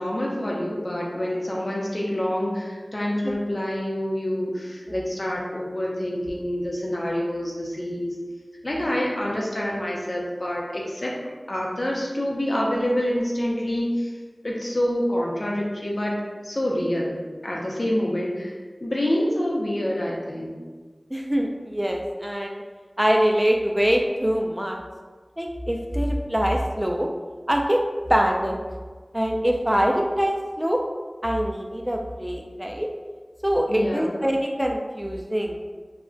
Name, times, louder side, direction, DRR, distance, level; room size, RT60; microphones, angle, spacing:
voice 1, 0.0-8.1 8.6-11.1 11.5-14.1 14.4-17.2 17.4-18.5 18.8-20.6 33.7-34.2, left 1 dB, 55° left, -3 dB, 0.6 m, -27 dB
voice 2, 21.1-22.6 23.0-24.8 25.4-27.1 27.5-27.8 28.1-28.6 29.1-30.8 31.2-32.9 33.4-35.6, equal, 15° right, 1 dB, 0.3 m, -24 dB
2.3 x 2.1 x 3.7 m, 1.4 s
wide cardioid pair, 45°, 0 cm